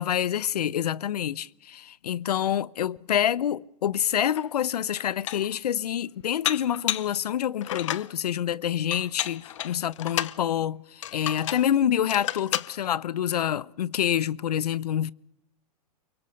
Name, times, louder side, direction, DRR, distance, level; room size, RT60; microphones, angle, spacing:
voice 1, 0.0-15.1, left 10 dB, 85° left, 0.8 m, -27 dB
Dishes pots and pans, 4.4-4.5 5.0-5.6 6.4-7.2 7.6-8.1 8.9-10.4 11.0-11.7 12.1-12.7, left 13 dB, 50° left, 0.8 m, -31 dB
24.0 x 23.0 x 6.6 m
hypercardioid pair, 160°, 20 cm